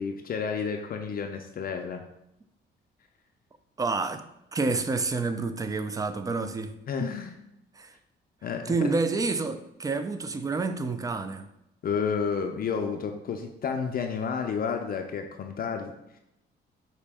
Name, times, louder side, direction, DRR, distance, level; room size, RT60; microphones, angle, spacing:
voice 1, 0.0-2.0 6.9-7.4 8.4-8.9 11.8-15.9, left 6 dB, 45° left, 5 dB, 0.4 m, -31 dB
voice 2, 3.8-4.2 4.5-6.7 7.8-7.9 8.7-11.5, right 3 dB, 20° right, 10 dB, 0.4 m, -28 dB
5.0 x 2.7 x 3.4 m, 0.84 s
cardioid pair, 90°, 20 cm